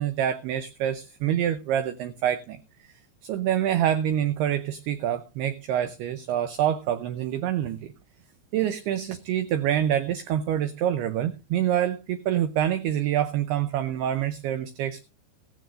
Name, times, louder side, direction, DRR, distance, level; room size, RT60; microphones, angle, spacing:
voice 1, 0.0-2.9 3.2-7.9 8.5-15.0, right 10 dB, 85° right, 11 dB, 2.3 m, -26 dB
15.5 x 15.0 x 2.5 m, 0.29 s
omnidirectional pair, 5.4 m